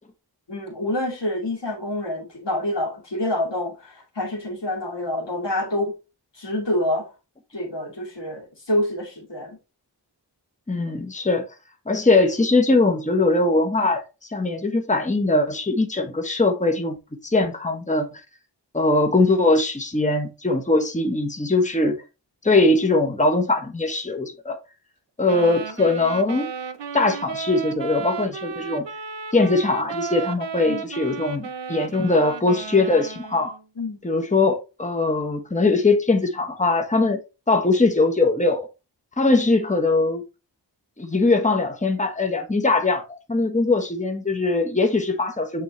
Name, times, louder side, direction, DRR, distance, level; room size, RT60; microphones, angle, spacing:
voice 1, 0.5-5.9 6.3-7.1 7.5-9.6 30.7-30.8 33.8-34.0, left 1 dB, 80° left, 2.4 m, -27 dB
voice 2, 10.7-11.5 11.9-14.0 14.3-17.0 17.2-18.1 18.7-22.0 22.4-24.6 25.2-26.5 26.9-28.9 29.3-33.5 34.0-37.2 37.5-38.7 39.2-40.2 41.0-45.6, left 2 dB, 15° left, 1.1 m, -21 dB
sound 1, 25.2-33.6, right 6 dB, 85° right, 0.7 m, -34 dB
8.2 x 3.9 x 3.1 m
wide cardioid pair, 45°, 42 cm